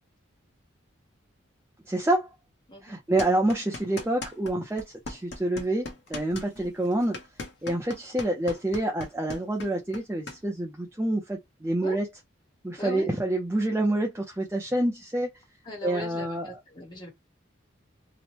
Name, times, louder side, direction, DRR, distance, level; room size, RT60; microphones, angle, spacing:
voice 1, 1.9-2.3 2.8-7.2 7.6-12.1 12.6-15.3 15.8-16.5, right 1 dB, 10° right, 0.5 m, -27 dB
sound 1, 3.2-4.5 4.8-10.4, left 2 dB, 55° left, 0.9 m, -39 dB
voice 2, 12.8-13.1 13.5-13.6 15.6-17.1, left 1 dB, 20° left, 0.9 m, -39 dB
2.9 x 2.1 x 2.9 m
head